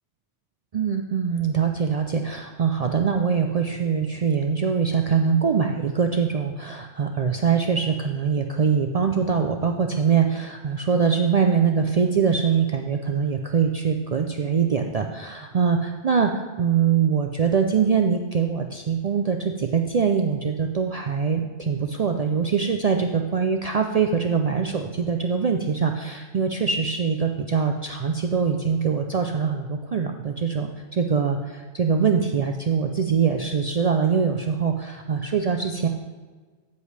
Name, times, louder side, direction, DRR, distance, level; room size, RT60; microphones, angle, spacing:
voice 1, 0.7-15.8 16.0-35.9, right 6 dB, 65° right, 4 dB, 0.3 m, -23 dB
9.3 x 8.2 x 3.3 m, 1.4 s
omnidirectional pair, 1.2 m